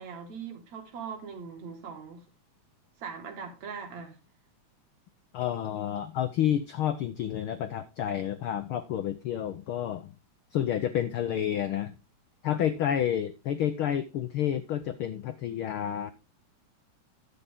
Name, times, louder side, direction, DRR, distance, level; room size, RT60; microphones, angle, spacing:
voice 1, 0.0-2.3 3.0-4.2, right 6 dB, 70° right, 3.2 m, -40 dB
voice 2, 5.3-10.1 10.5-11.9 12.4-16.1, left 10 dB, 85° left, 1.1 m, -30 dB
11.0 x 8.2 x 3.7 m
omnidirectional pair, 3.3 m